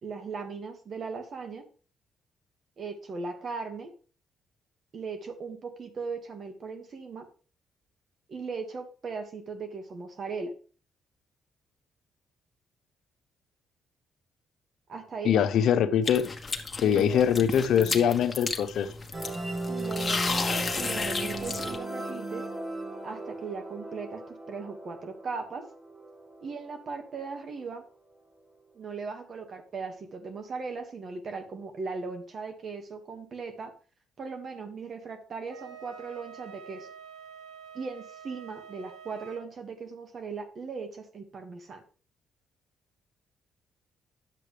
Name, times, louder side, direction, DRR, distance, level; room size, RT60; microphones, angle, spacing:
voice 1, 0.0-1.6 2.8-3.9 4.9-7.3 8.3-10.5 14.9-15.4 16.8-18.2 19.7-22.5 23.0-25.6 26.4-27.8 28.8-33.7 34.2-36.9 37.7-41.8, right 4 dB, 50° right, 1.8 m, -38 dB
voice 2, 15.2-16.3 16.8-18.9, left 9 dB, 75° left, 0.7 m, -23 dB
sound 1, 16.0-21.8, left 4 dB, 25° left, 1.3 m, -33 dB
sound 2, 19.1-26.6, right 2 dB, 30° right, 3.9 m, -36 dB
Wind instrument woodwind instrument, 35.5-39.4, right 7 dB, 85° right, 1.7 m, -47 dB
10.5 x 7.6 x 3.3 m
cardioid pair, 90°, 0 cm